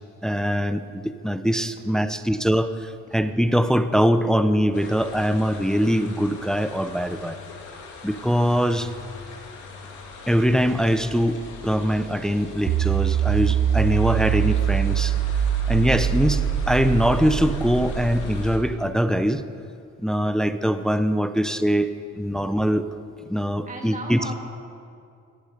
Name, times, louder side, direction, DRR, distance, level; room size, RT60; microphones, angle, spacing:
voice 1, 0.2-7.4 8.0-8.9 10.3-15.1 15.7-19.4 20.0-22.9 23.3-24.3, equal, ahead, 10 dB, 0.7 m, -22 dB
sound 1, 4.7-18.6, left 3 dB, 85° left, 2.7 m, -38 dB
sound 2, 12.7-18.9, right 11 dB, 50° right, 0.5 m, -24 dB
voice 2, 23.6-24.3, right 2 dB, 25° right, 1 dB, 2.0 m, -37 dB
17.0 x 15.5 x 5.1 m, 2.5 s
cardioid pair, 90°, 30 cm